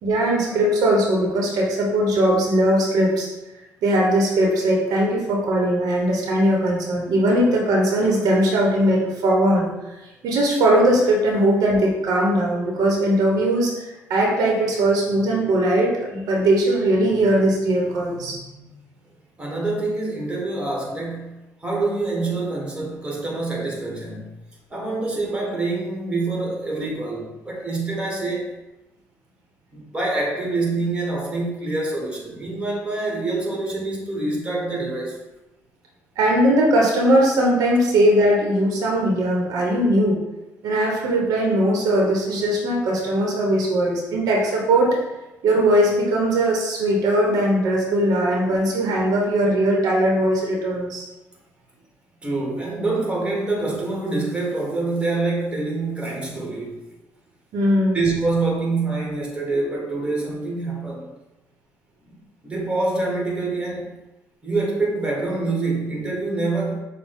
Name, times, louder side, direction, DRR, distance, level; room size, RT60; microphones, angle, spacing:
voice 1, 0.0-3.3 3.8-9.7 10.2-18.4 36.2-40.2 40.6-45.0 45.4-51.0 57.5-58.0, right 1 dB, 75° right, -2 dB, 0.9 m, -19 dB
voice 2, 19.4-21.3 21.6-24.3 24.7-28.5 29.7-35.2 52.2-56.8 57.9-61.0 62.1-63.9 64.4-66.8, right 3 dB, 15° right, -1 dB, 1.5 m, -26 dB
6.3 x 2.2 x 3.6 m, 1.0 s
cardioid pair, 80°, 6 cm